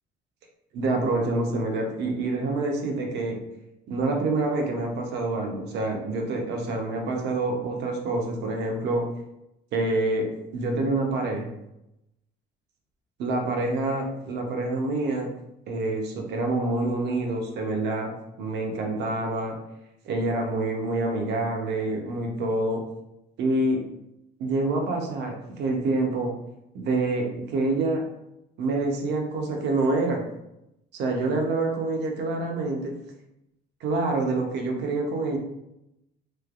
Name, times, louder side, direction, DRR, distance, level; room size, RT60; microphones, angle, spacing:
voice 1, 0.7-3.4 3.9-9.0 9.7-10.3 10.5-11.5 13.2-15.3 15.7-19.6 20.0-22.8 23.4-23.8 24.4-26.3 26.7-28.1 28.6-30.3 30.9-32.9 33.8-35.4, right 2 dB, 60° right, 2 dB, 0.7 m, -27 dB
3.2 x 2.8 x 2.4 m, 0.87 s
cardioid pair, 150°, 20 cm